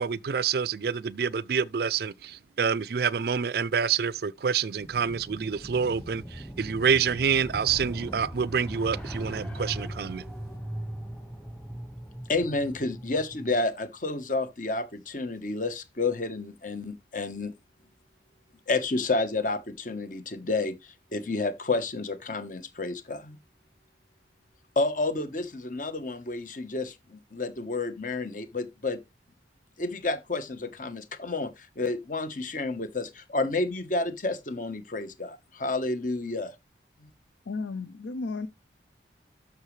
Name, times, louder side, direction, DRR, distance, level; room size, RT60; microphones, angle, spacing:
voice 1, 0.0-10.2, right 6 dB, 55° right, 0.4 m, -27 dB
sound 1, 4.8-13.6, right 1 dB, 5° left, 1.4 m, -39 dB
voice 2, 12.3-17.5 18.7-20.7 21.1-23.4 24.8-29.0 29.8-36.5, left 3 dB, 45° left, 1.1 m, -30 dB
voice 3, 37.5-38.5, left 3 dB, 90° left, 0.6 m, -33 dB
12.0 x 6.1 x 3.2 m
head